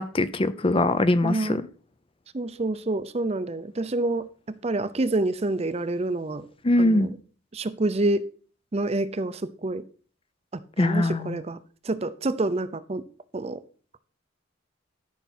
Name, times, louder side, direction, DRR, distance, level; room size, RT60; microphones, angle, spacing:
voice 1, 0.0-1.6 6.6-7.1 10.8-11.4, left 1 dB, 25° left, 0.5 m, -22 dB
voice 2, 1.2-1.6 2.3-4.3 4.6-6.5 6.8-7.2 7.5-8.3 8.7-9.8 10.8-11.6 11.8-13.0 13.3-13.6, right 2 dB, 30° right, 0.5 m, -27 dB
13.0 x 5.9 x 4.3 m
head